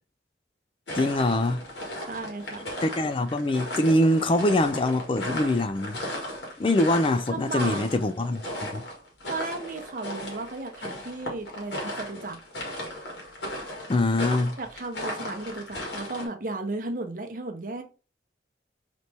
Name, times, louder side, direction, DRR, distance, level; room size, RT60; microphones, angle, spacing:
sound 1, 0.9-16.3, left 1 dB, 85° left, 1.9 m, -36 dB
voice 1, 1.0-1.6 2.8-6.0 6.6-8.8 13.9-14.6, left 1 dB, 30° left, 0.3 m, -24 dB
voice 2, 1.8-2.7 7.3-7.9 9.3-12.4 14.6-17.8, right 3 dB, 50° right, 0.8 m, -35 dB
4.1 x 3.1 x 3.4 m
head